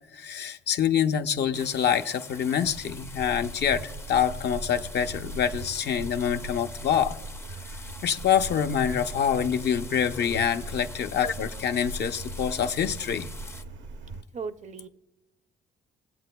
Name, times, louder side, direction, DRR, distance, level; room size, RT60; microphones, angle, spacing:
voice 1, 0.1-7.2 8.0-13.3, left 8 dB, 60° left, 0.6 m, -26 dB
sound 1, 1.5-13.6, left 2 dB, 10° left, 0.5 m, -46 dB
sound 2, 2.6-14.2, right 2 dB, 70° right, 0.7 m, -40 dB
voice 2, 14.3-14.9, right 5 dB, 35° right, 0.5 m, -37 dB
20.0 x 7.7 x 2.2 m
cardioid pair, 90°, 20 cm